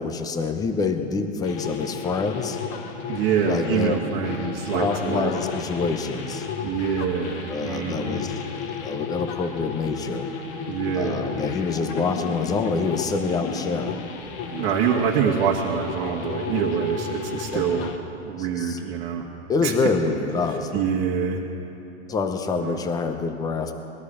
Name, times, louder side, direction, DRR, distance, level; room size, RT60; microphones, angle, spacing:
voice 1, 0.0-2.6 3.4-3.9 4.8-6.5 7.5-10.3 10.9-14.1 17.5-17.9 18.4-18.8 19.5-20.9 22.1-23.7, left 4 dB, 10° left, 7 dB, 0.7 m, -26 dB
sound 1, 1.4-18.0, left 6 dB, 35° left, 1.2 m, -33 dB
voice 2, 3.1-5.3 6.6-8.3 10.7-11.3 14.5-17.9 18.2-19.3 19.6-19.9 20.7-21.4 22.6-22.8, right 7 dB, 40° right, -3 dB, 1.5 m, -25 dB
20.0 x 13.0 x 5.0 m, 2.8 s
hypercardioid pair, 140°, 34 cm